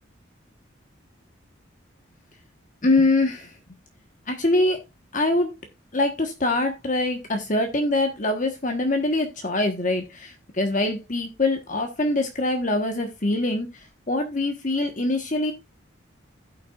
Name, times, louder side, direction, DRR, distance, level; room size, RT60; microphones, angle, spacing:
voice 1, 2.8-3.5 4.3-4.8 5.1-5.5 5.9-13.7 14.1-15.5, left 2 dB, 40° left, 4 dB, 1.2 m, -24 dB
15.5 x 5.9 x 2.4 m, 0.22 s
head